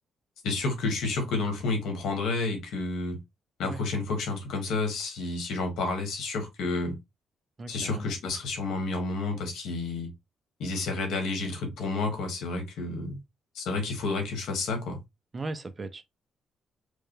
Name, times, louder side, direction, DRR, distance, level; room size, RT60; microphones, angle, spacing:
voice 1, 0.4-3.2 3.6-7.0 7.7-10.1 10.6-13.2 13.5-15.0, left 3 dB, 80° left, 1.4 m, -30 dB
voice 2, 7.6-8.2 15.3-16.0, right 3 dB, 20° right, 0.4 m, -37 dB
4.7 x 2.2 x 3.1 m
cardioid pair, 165°, 0 cm